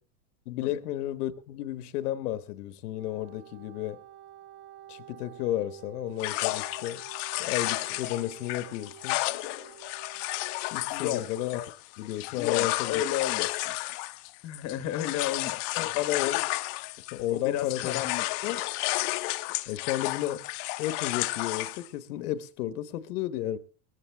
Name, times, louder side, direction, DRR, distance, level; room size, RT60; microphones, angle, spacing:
voice 1, 0.5-4.0 4.9-7.0 7.4-9.2 10.7-11.7 12.0-13.0 15.8-16.4 17.1-18.0 18.4-18.6 19.7-20.4 20.8-23.6, left 13 dB, 80° left, 1.2 m, -32 dB
Wind instrument woodwind instrument, 2.8-10.9, right 9 dB, 25° right, 0.6 m, -50 dB
sound 1, 6.2-17.3 17.6-21.9, left 21 dB, 55° left, 0.9 m, -32 dB
voice 2, 10.9-11.3 12.3-13.8 14.4-15.7 17.3-18.3, left 11 dB, 35° left, 1.2 m, -32 dB
19.5 x 14.5 x 3.4 m
supercardioid pair, 140°, 46 cm